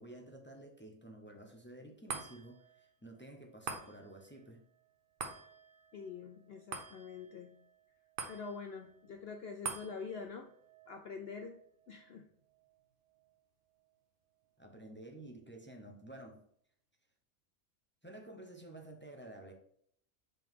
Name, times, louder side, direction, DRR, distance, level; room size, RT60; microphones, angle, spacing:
voice 1, 0.0-4.6 14.6-16.4 18.0-19.5, right 1 dB, 15° left, 2 dB, 0.4 m, -51 dB
sound 1, 2.1-14.7 15.1-15.2, right 5 dB, 45° right, 0.9 m, -49 dB
voice 2, 5.9-7.6 8.3-10.5 10.9-11.6 11.9-12.3, left 5 dB, 75° left, 4 dB, 0.5 m, -45 dB
5.4 x 5.3 x 3.7 m, 0.64 s
omnidirectional pair, 1.6 m